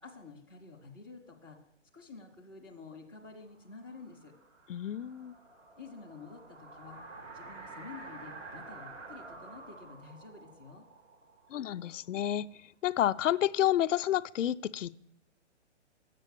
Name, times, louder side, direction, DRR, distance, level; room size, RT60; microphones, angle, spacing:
voice 1, 0.0-1.6 1.9-4.3 5.8-7.0 7.3-10.8, left 4 dB, 10° right, 0.3 m, -50 dB
sound 1, 3.6-12.3, right 3 dB, 90° right, 2.4 m, -50 dB
voice 2, 4.7-5.3 11.5-12.5 12.8-15.0, left 12 dB, 85° left, 0.5 m, -30 dB
7.5 x 6.7 x 6.6 m
hypercardioid pair, 145°, 36 cm